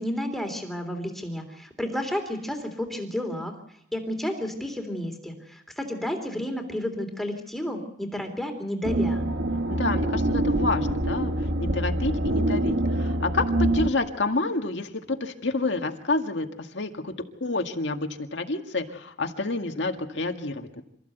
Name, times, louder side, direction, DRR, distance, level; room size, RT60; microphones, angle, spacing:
voice 1, 0.0-3.5 3.9-9.2, left 1 dB, ahead, 4 dB, 3.4 m, -31 dB
sound 1, 8.8-13.9, right 1 dB, 65° right, 1.3 m, -25 dB
voice 2, 9.7-20.8, left 3 dB, 70° left, 4 dB, 2.0 m, -29 dB
27.5 x 15.0 x 8.1 m, 0.75 s
head